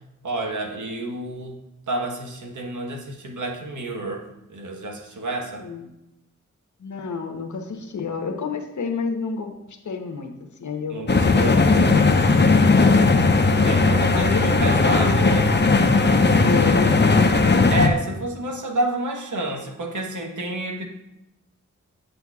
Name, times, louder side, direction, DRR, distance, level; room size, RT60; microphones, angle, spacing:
voice 1, 0.2-1.6 1.9-5.7 10.9-11.6 13.6-15.5 17.7-20.8, right 2 dB, 75° right, 2 dB, 1.2 m, -29 dB
voice 2, 6.8-10.3 10.6-11.0 12.7-13.1 14.1-15.4 16.4-17.0, left 5 dB, 70° left, 4 dB, 1.0 m, -29 dB
sound 1, 11.1-17.9, left 3 dB, 35° left, 0.7 m, -17 dB
8.0 x 7.6 x 2.4 m, 0.90 s
cardioid pair, 45°, 31 cm